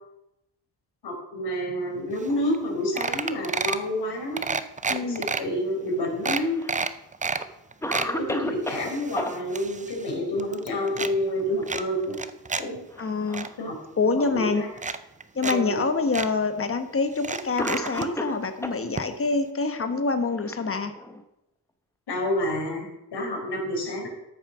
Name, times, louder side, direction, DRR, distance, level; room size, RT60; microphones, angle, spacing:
voice 1, 1.0-4.4 5.0-6.6 8.1-12.1 12.6-12.8 13.6-13.7 14.1-14.7 15.4-15.8 22.1-24.1, left 1 dB, 70° left, -2 dB, 4.7 m, -28 dB
sound 1, 2.2-2.3 2.5-2.7 3.0-3.9 4.4-5.4 5.9-6.0 6.2-7.4 7.7-8.1 8.6-10.1 10.4-11.1 11.7-12.6 13.0-13.5 14.3-14.4 14.8-15.6 15.8-15.9 16.1-16.3 17.2-18.1 19.0-19.1 19.3-19.4, right 4 dB, 20° right, 0.4 m, -30 dB
voice 2, 4.9-5.2 13.0-13.5 14.0-14.6 15.3-20.9, left 4 dB, 30° left, 8 dB, 1.2 m, -26 dB
Cough, 6.0-6.9 7.4-7.5 7.8-9.3 11.2-11.6 12.0-12.1 12.9-13.6 14.4-14.5 15.5-15.6 16.8-16.9 17.6-18.8 19.8-21.2, equal, 5° left, 0.9 m, -33 dB
13.5 x 8.4 x 6.2 m, 0.88 s
wide cardioid pair, 165°, 41 cm